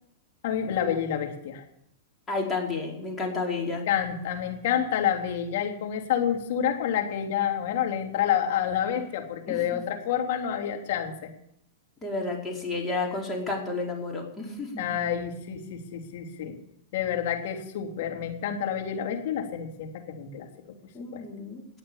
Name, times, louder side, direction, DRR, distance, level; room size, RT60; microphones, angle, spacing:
voice 1, 0.4-1.6 3.9-11.1 14.8-16.5 16.9-20.5 21.1-21.2, left 9 dB, 60° left, 2 dB, 3.4 m, -28 dB
voice 2, 2.3-3.8 9.5-9.8 12.0-14.8 20.9-21.6, left 3 dB, 15° left, -1 dB, 4.6 m, -31 dB
19.5 x 8.7 x 7.3 m, 0.74 s
hypercardioid pair, 105°, 0 cm